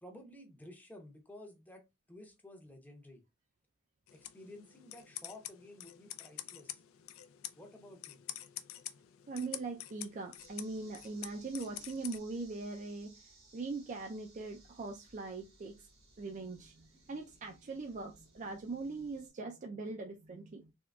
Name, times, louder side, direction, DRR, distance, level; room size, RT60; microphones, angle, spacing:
voice 1, 0.0-3.2 4.1-6.8 7.5-8.2, left 1 dB, 10° left, 0.7 m, -53 dB
sound 1, 4.1-12.2, left 13 dB, 80° left, 0.4 m, -47 dB
voice 2, 9.3-15.8 16.2-20.7, right 3 dB, 35° right, 0.4 m, -41 dB
sound 2, 10.4-19.3, right 3 dB, 80° right, 1.3 m, -62 dB
3.6 x 3.0 x 2.2 m
head